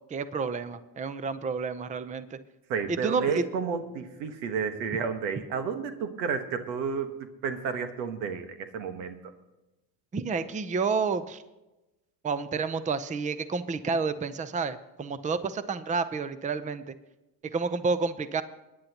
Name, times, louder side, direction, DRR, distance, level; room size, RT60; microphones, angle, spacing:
voice 1, 0.1-2.4 2.9-3.4 10.1-11.4 12.2-16.9 17.5-18.4, right 4 dB, 15° right, 13 dB, 0.6 m, -30 dB
voice 2, 2.7-7.1 7.4-9.2, right 6 dB, 85° right, 8 dB, 1.5 m, -31 dB
21.5 x 10.5 x 2.9 m, 1.0 s
supercardioid pair, 95°, 49 cm